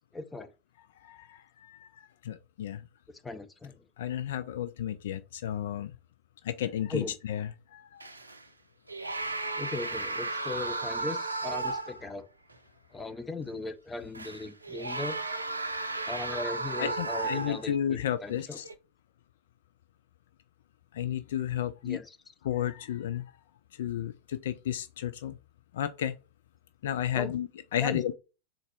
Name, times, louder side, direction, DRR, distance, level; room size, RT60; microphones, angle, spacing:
voice 1, 0.1-0.5 3.2-3.8 6.9-7.2 9.6-12.3 12.9-15.2 16.1-18.6 21.8-22.2 27.1-27.3 27.8-28.0, left 3 dB, 10° left, 0.6 m, -38 dB
voice 2, 1.0-2.8 4.0-5.9 6.4-8.1 16.8-18.6 20.9-22.0 22.4-23.2 23.8-25.4 25.7-26.1 26.8-28.1, left 10 dB, 60° left, 0.4 m, -33 dB
sound 1, 8.0-8.4 8.9-12.1 12.5-12.6 14.1-17.8 18.5-18.7, right 3 dB, 80° right, 0.5 m, -34 dB
3.8 x 2.5 x 4.5 m
figure-of-eight pair, 90°, 0 cm